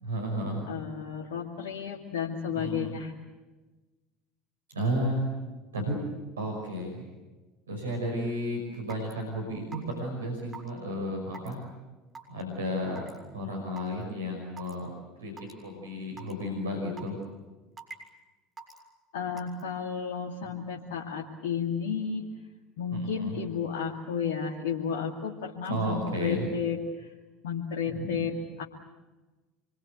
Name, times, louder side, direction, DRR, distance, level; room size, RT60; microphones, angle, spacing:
voice 1, 0.0-0.8 2.5-2.9 4.7-5.2 5.7-6.0 6.4-7.1 7.7-11.6 12.3-13.1 13.3-14.9 15.2-17.2 22.9-23.4 25.7-26.5 27.9-28.3, equal, 85° right, 1 dB, 5.6 m, -33 dB
voice 2, 0.7-3.1 19.1-22.4 22.8-27.1 27.4-28.6, left 6 dB, 75° left, -1 dB, 2.4 m, -32 dB
Raindrop / Water tap faucet / Drip, 8.9-9.1 9.7-10.0 10.5-10.7 11.3-11.5 12.1-12.4 13.0-13.2 13.8-13.9 14.6-14.7 15.4-15.5 16.2-16.3 17.0-17.2 17.8-18.1 18.6-18.8 19.4-19.6, right 4 dB, 25° right, 7.0 m, -43 dB
27.0 x 23.5 x 8.1 m, 1.2 s
hypercardioid pair, 75°, 0 cm